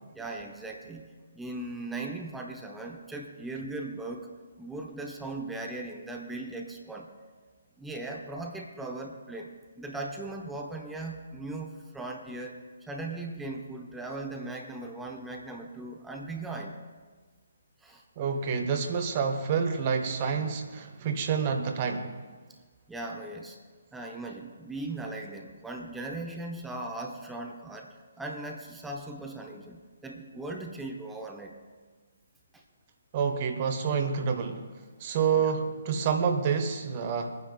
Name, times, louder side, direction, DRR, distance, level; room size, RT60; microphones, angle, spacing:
voice 1, 0.1-7.1 7.8-16.8 17.8-18.0 22.9-23.6 23.9-31.6 32.5-32.6 35.4-35.5, right 2 dB, 5° right, 1 dB, 0.8 m, -38 dB
voice 2, 18.2-22.2 33.1-34.6 35.0-37.4, right 6 dB, 30° right, 6 dB, 0.8 m, -28 dB
28.0 x 9.5 x 2.3 m, 1.4 s
figure-of-eight pair, 135°, 0 cm